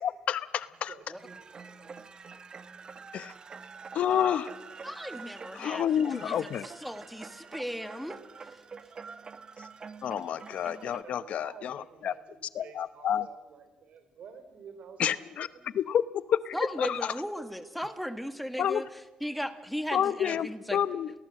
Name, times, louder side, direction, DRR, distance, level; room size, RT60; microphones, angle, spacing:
voice 1, 0.0-0.9 3.1-3.3 3.9-4.5 5.5-6.7 10.0-12.1 12.5-13.3 15.0-15.5 15.7-17.1 18.6-18.8 19.9-21.1, left 9 dB, 70° left, 15 dB, 0.9 m, -29 dB
voice 2, 0.6-1.4 10.7-15.8, right 6 dB, 70° right, 10 dB, 3.6 m, -51 dB
sound 1, 1.2-11.0, right 5 dB, 40° right, 1.1 m, -46 dB
voice 3, 4.8-5.8 6.1-6.4 6.6-8.2 16.5-18.9 19.2-20.8, equal, ahead, 9 dB, 1.8 m, -36 dB
28.5 x 19.5 x 7.7 m, 1.2 s
cardioid pair, 100°, 2 cm